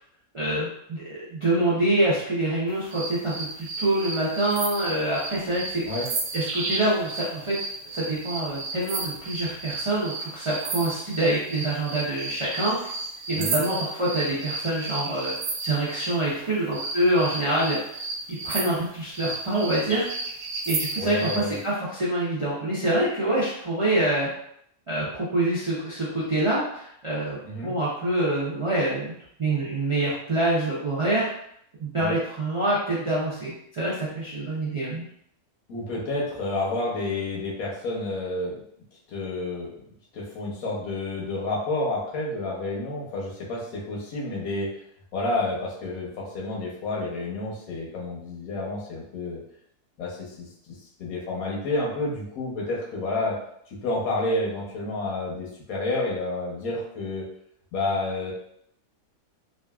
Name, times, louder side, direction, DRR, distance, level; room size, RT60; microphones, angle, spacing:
voice 1, 0.3-5.8 6.3-7.6 7.9-12.9 13.3-18.0 18.3-20.1 20.7-24.3 24.9-27.4 27.6-29.1 29.4-31.3 31.8-35.0, right 1 dB, 50° right, -8 dB, 0.3 m, -26 dB
sound 1, 2.9-16.2 16.7-21.5, right 3 dB, 75° right, 1.0 m, -33 dB
voice 2, 13.3-13.6 21.0-21.6 27.4-27.7 32.0-32.2 35.7-38.6 39.1-39.7 40.1-44.7 45.1-49.4 50.0-50.5 51.0-53.4 53.7-57.2 57.7-58.3, left 2 dB, 90° left, -3 dB, 1.3 m, -29 dB
3.1 x 2.4 x 2.2 m, 0.70 s
omnidirectional pair, 1.4 m